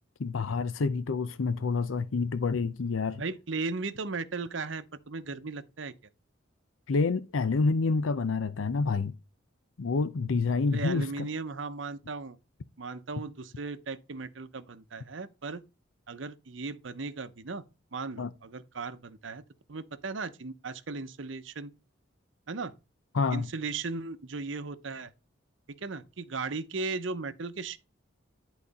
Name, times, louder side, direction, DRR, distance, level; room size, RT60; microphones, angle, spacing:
voice 1, 0.2-3.2 6.9-9.1 9.8-11.3 18.2-18.3 23.1-23.5, left 4 dB, 80° left, 0.5 m, -28 dB
voice 2, 3.2-5.9 10.7-12.4 12.8-15.6 16.1-17.6 17.9-19.4 19.7-21.7 22.5-22.7 23.3-25.1 25.8-27.8, right 4 dB, 70° right, 0.8 m, -36 dB
11.0 x 4.1 x 4.1 m
head